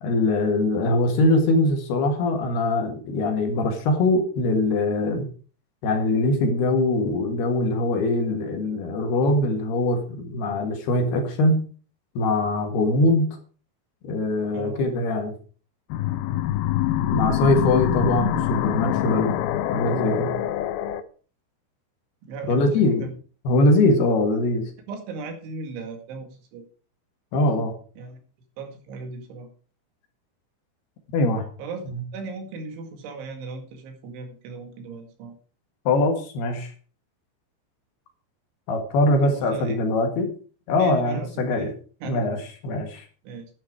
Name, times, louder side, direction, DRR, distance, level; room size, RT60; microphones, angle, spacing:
voice 1, 0.0-5.3 5.8-11.6 12.2-13.3 14.1-15.3 17.1-19.3 19.7-20.3 22.5-23.1 23.5-24.7 27.3-27.7 31.1-31.5 35.9-36.7 38.7-40.3 40.7-41.7 42.1-42.4 42.6-43.1, left 2 dB, 65° left, 4 dB, 3.6 m, -22 dB
voice 2, 14.5-14.9 22.2-23.1 24.9-26.6 28.0-28.2 28.6-29.5 31.6-35.3 39.2-39.8 40.8-41.7 42.0-42.3 43.2-43.5, right 3 dB, 80° right, 5 dB, 4.4 m, -37 dB
sound 1, 15.9-21.0, left 13 dB, 85° left, 2.2 m, -25 dB
10.5 x 10.5 x 4.7 m, 0.40 s
omnidirectional pair, 5.4 m